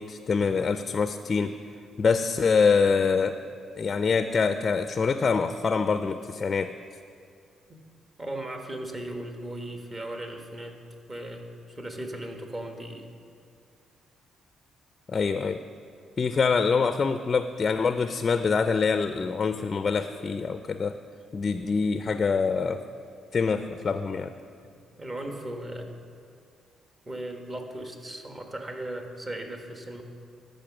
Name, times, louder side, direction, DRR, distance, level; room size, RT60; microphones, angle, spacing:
voice 1, 0.0-1.5 2.0-3.4 3.8-6.7 15.1-15.6 16.2-21.0 21.3-22.8 23.3-24.3, left 5 dB, 40° left, 9 dB, 0.4 m, -25 dB
voice 2, 8.2-10.8 11.1-13.1 24.6-25.9 27.0-30.0, right 1 dB, 30° right, 3 dB, 1.3 m, -37 dB
13.0 x 5.3 x 6.1 m, 2.3 s
cardioid pair, 90°, 0 cm